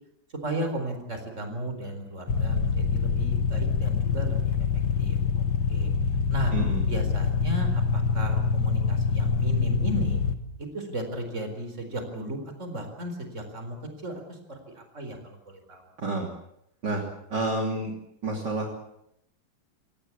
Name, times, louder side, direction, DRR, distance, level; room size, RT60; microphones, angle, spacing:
voice 1, 0.4-4.6 5.0-5.2 5.7-5.9 6.3-6.5 6.9-10.2 10.6-13.8 14.0-15.8, right 1 dB, 35° right, 6 dB, 4.7 m, -35 dB
sound 1, 2.3-10.3, left 5 dB, 70° left, 2.4 m, -25 dB
voice 2, 6.5-6.9 16.0-16.3 16.8-17.9 18.2-18.7, right 2 dB, 60° right, 1 dB, 3.7 m, -29 dB
26.0 x 17.5 x 8.5 m, 0.77 s
omnidirectional pair, 2.1 m